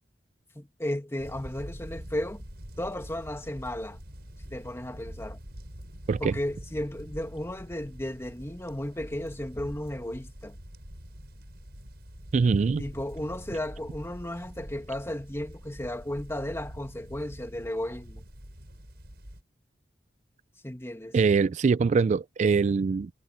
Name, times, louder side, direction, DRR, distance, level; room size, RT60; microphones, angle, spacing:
voice 1, 0.6-2.4 2.8-4.0 4.5-5.4 6.2-10.6 12.8-18.2 20.6-21.2, left 1 dB, 15° left, 2.1 m, -34 dB
sound 1, 1.2-19.4, equal, 65° right, 7.5 m, -45 dB
voice 2, 12.3-12.8 21.1-23.1, right 5 dB, 40° right, 0.3 m, -23 dB
head